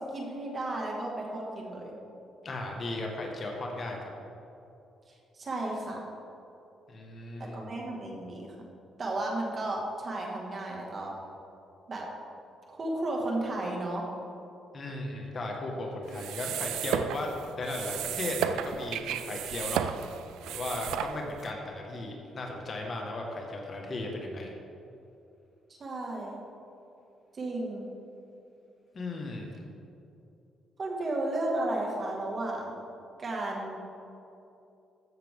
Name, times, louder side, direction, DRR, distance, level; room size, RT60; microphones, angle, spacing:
voice 1, 0.1-2.0 5.4-6.0 7.5-8.5 9.0-11.1 11.9-12.0 12.7-14.1 25.8-26.4 27.3-27.9 30.8-32.8 33.2-33.8, right 2 dB, 40° right, -1 dB, 2.1 m, -33 dB
voice 2, 2.4-4.1 6.9-7.7 14.7-20.1 20.5-24.5 28.9-29.6, left 2 dB, 40° left, 0 dB, 1.8 m, -36 dB
sound 1, 16.1-21.5, right 9 dB, 90° right, 0.4 m, -34 dB
14.5 x 6.7 x 3.8 m, 2.7 s
cardioid pair, 90°, 0 cm